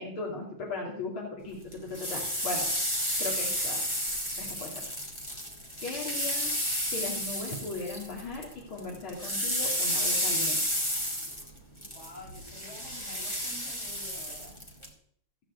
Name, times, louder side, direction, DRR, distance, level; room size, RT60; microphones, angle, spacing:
voice 1, 0.0-1.6 1.9-2.7 3.2-3.8 4.4-4.9 5.8-6.5 6.9-10.6, left 3 dB, 80° left, -2 dB, 3.3 m, -37 dB
sound 1, 1.7-8.5 8.8-14.9, equal, 15° left, 2.1 m, -32 dB
voice 2, 11.8-14.6, left 1 dB, 30° left, -5 dB, 7.5 m, -49 dB
15.0 x 6.4 x 8.0 m, 0.63 s
omnidirectional pair, 2.3 m